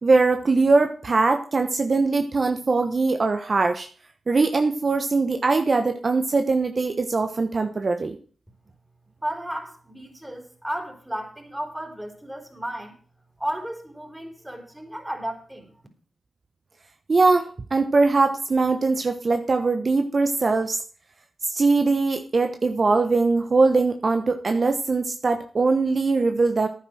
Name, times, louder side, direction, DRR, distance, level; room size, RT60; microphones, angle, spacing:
voice 1, 0.0-3.9 4.3-8.2 17.1-20.8 21.4-26.7, right 3 dB, 50° right, 6 dB, 1.1 m, -21 dB
voice 2, 9.2-12.9 13.4-15.7, right 1 dB, 10° right, 3 dB, 4.5 m, -33 dB
10.5 x 9.4 x 6.3 m, 0.42 s
supercardioid pair, 40°, 0 cm